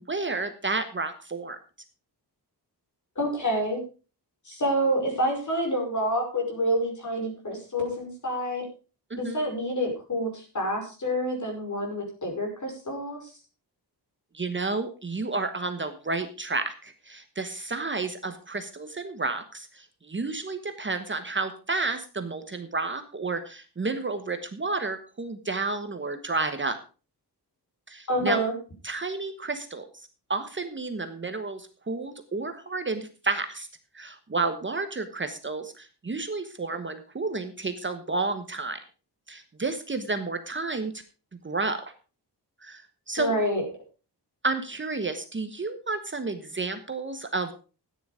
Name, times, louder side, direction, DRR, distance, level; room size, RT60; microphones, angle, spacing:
voice 1, 0.0-1.6 9.1-9.4 14.3-26.8 27.9-28.4 28.8-33.7 33.9-38.8 39.3-40.9 41.4-41.8 42.6-43.3 44.4-47.5, right 3 dB, 30° right, 8 dB, 1.1 m, -31 dB
voice 2, 3.2-3.8 4.5-8.6 9.2-13.2 28.1-28.5 43.2-43.6, equal, 45° left, 2 dB, 5.4 m, -28 dB
13.0 x 10.0 x 4.9 m, 0.35 s
wide cardioid pair, 155°, 41 cm